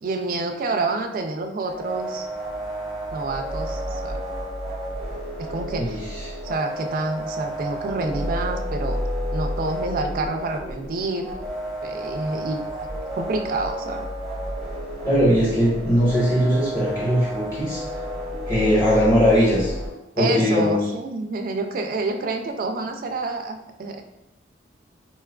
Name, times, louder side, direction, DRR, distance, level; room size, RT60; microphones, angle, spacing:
voice 1, 0.0-2.3 3.1-4.2 5.4-6.0 6.4-9.0 9.3-11.3 11.8-12.8 13.2-14.1 20.2-24.0, right 3 dB, 50° right, 5 dB, 0.3 m, -28 dB
sound 1, 1.6-19.9, equal, ahead, 0.8 m, -31 dB
voice 2, 5.8-6.3 15.0-17.8 18.5-19.7 20.1-20.8, equal, 15° left, -8 dB, 1.1 m, -20 dB
4.2 x 2.3 x 2.2 m, 0.90 s
head